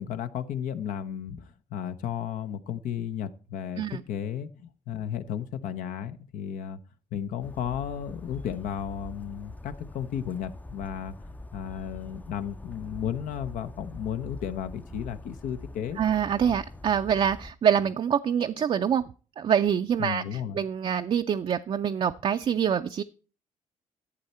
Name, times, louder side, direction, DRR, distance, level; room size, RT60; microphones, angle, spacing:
voice 1, 0.0-6.8 7.1-11.1 11.5-16.0 16.4-16.6 20.0-20.6, left 9 dB, 80° left, 0.8 m, -34 dB
Bird vocalization bird call bird song, 7.4-17.5, left 2 dB, 10° left, 0.5 m, -44 dB
voice 2, 16.0-23.0, right 8 dB, 45° right, 0.4 m, -25 dB
11.5 x 8.2 x 4.3 m
cardioid pair, 100°, 13 cm